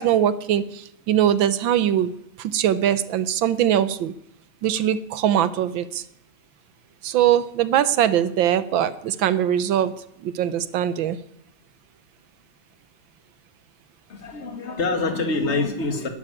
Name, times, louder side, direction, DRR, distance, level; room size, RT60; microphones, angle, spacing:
voice 1, 0.0-2.1 2.4-4.1 4.6-6.0 7.0-9.9 10.2-11.2, right 10 dB, 70° right, 15 dB, 1.5 m, -21 dB
voice 2, 14.1-16.1, left 3 dB, 30° left, 7 dB, 2.1 m, -25 dB
12.0 x 11.5 x 9.8 m, 0.75 s
omnidirectional pair, 2.4 m